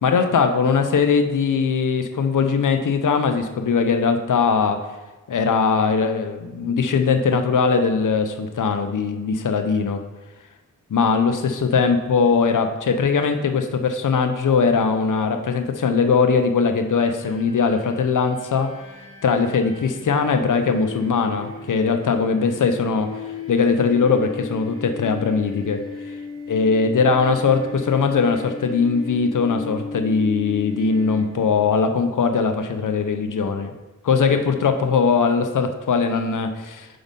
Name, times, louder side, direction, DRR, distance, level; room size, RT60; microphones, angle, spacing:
voice 1, 0.0-4.9 5.3-10.0 10.9-18.8 19.2-23.1 23.5-25.8 26.5-33.7 34.0-36.9, left 5 dB, 75° left, 7 dB, 0.7 m, -20 dB
sound 1, 17.2-31.7, left 4 dB, 45° right, 2.1 m, -36 dB
5.2 x 3.9 x 5.3 m, 1.1 s
cardioid pair, 45°, 32 cm